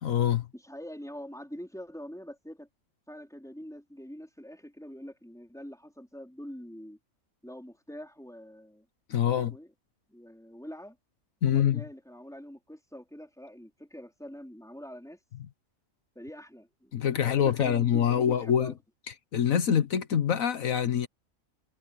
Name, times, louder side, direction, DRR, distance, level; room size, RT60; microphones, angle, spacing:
voice 1, 0.0-0.5 9.1-9.5 11.4-11.8 16.9-18.7 19.3-21.1, left 9 dB, 75° left, 1.4 m, -25 dB
voice 2, 0.5-2.7 3.1-7.0 7.4-8.9 9.3-9.7 10.1-11.0 11.4-15.2 16.1-18.7, equal, ahead, 4.2 m, -44 dB
omnidirectional pair, 1.4 m